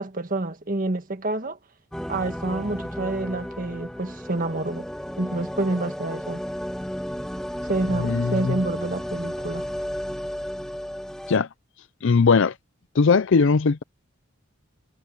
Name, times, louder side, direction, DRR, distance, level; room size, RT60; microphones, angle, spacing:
voice 1, 0.0-1.6 2.1-4.8 5.2-6.4 7.6-9.7, right 2 dB, 40° right, 1.6 m, -28 dB
sound 1, 1.9-11.4, equal, 5° left, 2.6 m, -33 dB
voice 2, 8.0-8.6 11.3-11.5 12.0-12.5 12.9-13.8, left 5 dB, 60° left, 0.5 m, -19 dB
head